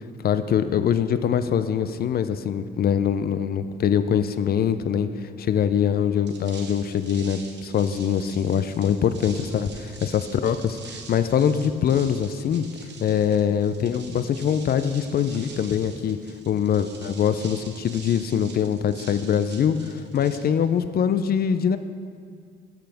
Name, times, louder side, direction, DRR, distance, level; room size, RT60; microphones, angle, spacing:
voice 1, 0.2-5.1 5.4-12.7 13.0-16.2 16.5-21.8, left 8 dB, 50° left, 11 dB, 0.4 m, -23 dB
sound 1, 6.2-21.0, right 5 dB, 60° right, 0.9 m, -45 dB
12.0 x 5.8 x 3.4 m, 2.2 s
cardioid pair, 90°, 20 cm